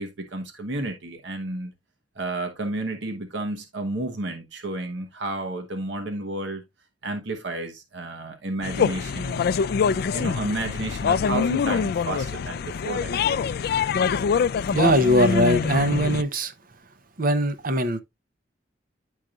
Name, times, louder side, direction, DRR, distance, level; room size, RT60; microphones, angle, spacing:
voice 1, 0.0-1.7 2.1-6.6 7.0-13.3, right 2 dB, 70° right, 1.1 m, -32 dB
sound 1, 8.6-16.2, left 6 dB, 55° left, 0.3 m, -24 dB
voice 2, 14.7-16.5 17.2-18.0, equal, 50° right, 0.8 m, -21 dB
10.0 x 4.7 x 2.4 m
head